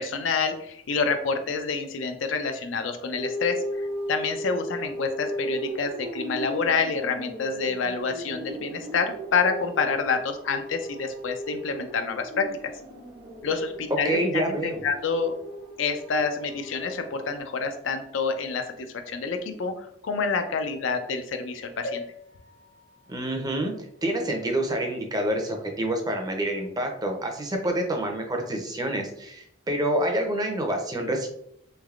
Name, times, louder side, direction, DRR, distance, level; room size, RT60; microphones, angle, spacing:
voice 1, 0.0-12.7 13.4-14.4 14.8-15.3 15.8-22.0, left 5 dB, 75° left, 7 dB, 0.4 m, -28 dB
sound 1, 3.1-17.4, equal, 75° right, 1.0 m, -37 dB
voice 2, 14.0-14.8 23.1-31.3, right 1 dB, 20° right, 3 dB, 0.5 m, -27 dB
sound 2, 21.8-25.5 26.1-26.2 26.4-26.5, left 2 dB, 50° left, 0.9 m, -43 dB
3.3 x 3.1 x 2.4 m, 0.70 s
head